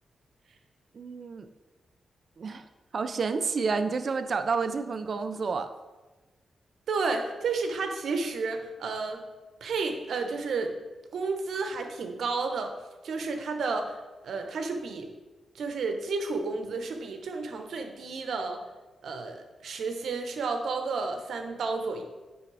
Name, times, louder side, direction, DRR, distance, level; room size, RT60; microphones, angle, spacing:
voice 1, 0.9-1.5 2.4-2.7 2.9-5.7, right 4 dB, 55° right, 8 dB, 0.5 m, -29 dB
voice 2, 6.9-9.2 9.6-10.7 11.1-12.7 13.0-13.9 14.2-15.1 15.5-18.6 19.0-22.0, right 4 dB, 75° right, 5 dB, 1.0 m, -31 dB
9.7 x 3.5 x 4.8 m, 1.2 s
cardioid pair, 75°, 0 cm